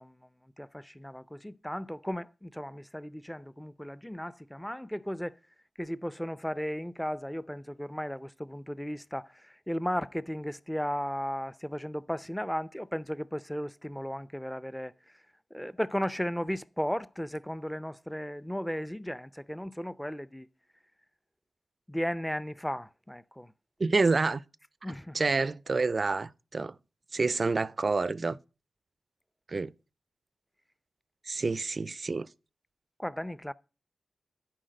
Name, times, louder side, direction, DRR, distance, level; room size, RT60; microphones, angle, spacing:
voice 1, 0.0-5.4 5.8-15.2 15.5-20.5 21.9-23.5 24.8-25.2 33.0-33.5, equal, 5° left, 0.5 m, -35 dB
voice 2, 23.8-24.4 25.1-26.8 27.1-28.4 29.5-29.7 31.3-32.3, right 3 dB, 50° right, 0.4 m, -28 dB
10.0 x 4.6 x 7.6 m
cardioid pair, 50°, 0 cm